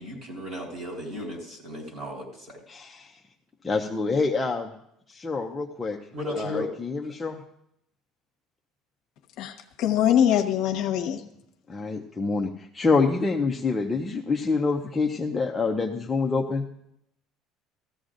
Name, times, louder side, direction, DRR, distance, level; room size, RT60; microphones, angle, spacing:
voice 1, 0.0-2.6 6.1-6.7, left 1 dB, 30° right, 1 dB, 3.7 m, -35 dB
voice 2, 2.7-3.1 3.6-4.7 5.1-6.0 6.3-7.4 11.7-16.6, left 4 dB, 10° left, 0 dB, 0.6 m, -26 dB
voice 3, 9.4-11.2, left 10 dB, 55° left, 5 dB, 1.0 m, -23 dB
16.0 x 14.5 x 2.6 m, 0.76 s
cardioid pair, 165°, 0 cm